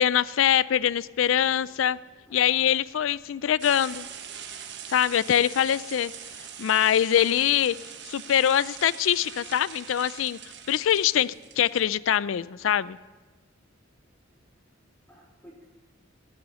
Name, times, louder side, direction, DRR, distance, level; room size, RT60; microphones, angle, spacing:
voice 1, 0.0-2.0 2.3-4.1 4.9-6.1 6.6-7.8 8.1-10.4 10.7-13.0, left 10 dB, 70° left, 0.4 m, -23 dB
voice 2, 1.5-2.4 13.3-13.4 14.2-14.4 14.8-15.7, equal, 5° left, 3.4 m, -56 dB
sound 1, 3.6-11.8, right 8 dB, 60° right, 1.2 m, -43 dB
17.5 x 6.9 x 8.8 m
head